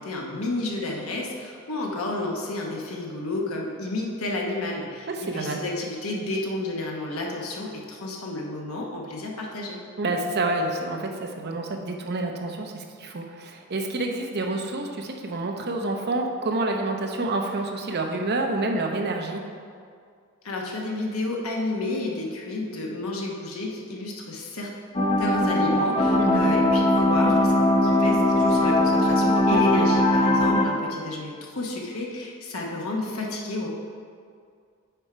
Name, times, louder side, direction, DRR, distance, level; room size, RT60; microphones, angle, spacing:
voice 1, 0.0-9.8 20.4-24.7 25.2-27.5 27.8-33.7, left 2 dB, 80° left, -1 dB, 1.0 m, -31 dB
voice 2, 5.1-5.6 10.0-19.4 26.2-26.5 29.5-29.9, right 2 dB, 50° right, 2 dB, 0.7 m, -28 dB
sound 1, 24.9-30.6, left 1 dB, 25° left, 0.6 m, -20 dB
6.8 x 4.4 x 4.9 m, 2.2 s
head